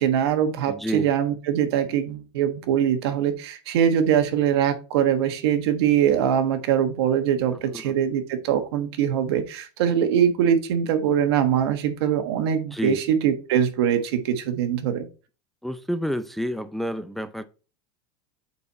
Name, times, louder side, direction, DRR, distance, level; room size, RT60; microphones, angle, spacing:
voice 1, 0.0-15.1, right 9 dB, 80° right, 1.3 m, -22 dB
voice 2, 0.7-1.1 7.7-7.9 12.7-13.0 15.6-17.4, equal, ahead, 0.5 m, -29 dB
8.3 x 4.3 x 4.2 m
supercardioid pair, 135°, 13 cm